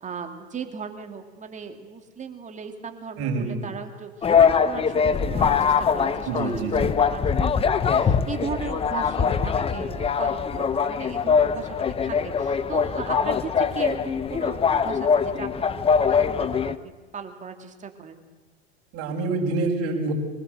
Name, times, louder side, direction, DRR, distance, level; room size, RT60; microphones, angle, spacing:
voice 1, 0.0-6.7 7.0-18.2, right 6 dB, 20° right, 5 dB, 2.8 m, -37 dB
voice 2, 3.2-3.6 6.3-6.9 18.9-20.1, right 3 dB, 45° right, -3 dB, 5.7 m, -26 dB
sound 1, 4.2-16.8, left 6 dB, 15° left, 0.9 m, -22 dB
25.5 x 19.5 x 8.0 m, 1.3 s
hypercardioid pair, 120°, 33 cm